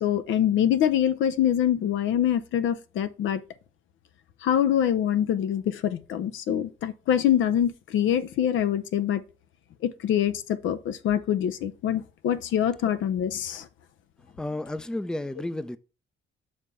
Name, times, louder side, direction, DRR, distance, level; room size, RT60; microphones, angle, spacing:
voice 1, 0.0-3.4 4.4-9.2 9.8-13.7, left 10 dB, 80° left, 0.7 m, -25 dB
voice 2, 14.4-15.8, left 1 dB, 5° left, 0.5 m, -32 dB
6.5 x 3.6 x 5.5 m
cardioid pair, 90°, 20 cm